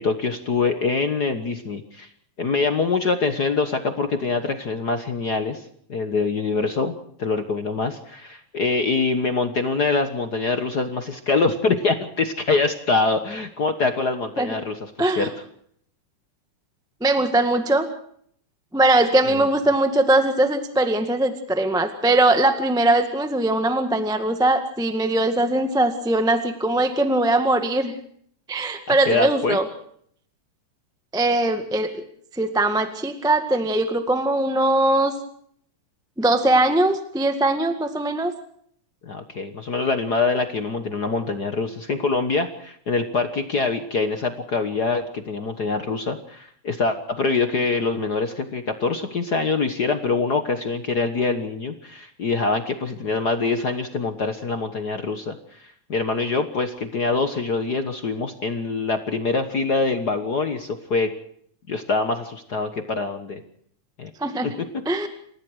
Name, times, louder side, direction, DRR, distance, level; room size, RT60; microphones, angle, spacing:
voice 1, 0.0-2.1 2.4-6.9 7.2-15.3 19.3-19.5 28.9-29.6 39.0-61.1 61.7-63.4 64.0-64.1 64.4-64.5, left 4 dB, 50° left, 8 dB, 1.2 m, -24 dB
voice 2, 15.0-15.3 17.0-17.8 18.7-27.9 28.5-29.7 31.1-32.0 32.3-35.1 36.2-38.3 64.2-64.5 64.8-65.1, right 2 dB, ahead, 7 dB, 0.9 m, -21 dB
28.5 x 15.5 x 6.3 m, 0.64 s
omnidirectional pair, 3.6 m